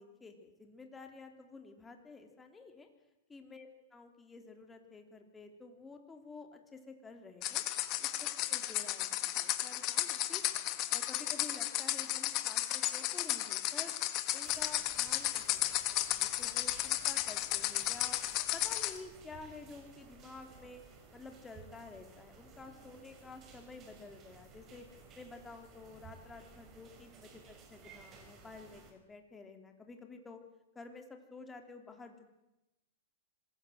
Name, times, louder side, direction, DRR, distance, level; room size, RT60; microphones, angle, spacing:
voice 1, 0.0-2.9 3.3-7.6 8.0-10.4 10.9-13.9 14.3-18.2 18.5-20.8 21.1-24.9 25.1-30.4 30.7-32.2, left 3 dB, 10° left, 5 dB, 3.2 m, -51 dB
sound 1, 7.4-19.0, left 15 dB, 35° left, 2.0 m, -34 dB
sound 2, 14.4-28.9, right 5 dB, 25° right, 5.0 m, -57 dB
26.0 x 20.0 x 7.9 m, 0.97 s
hypercardioid pair, 145°, 0 cm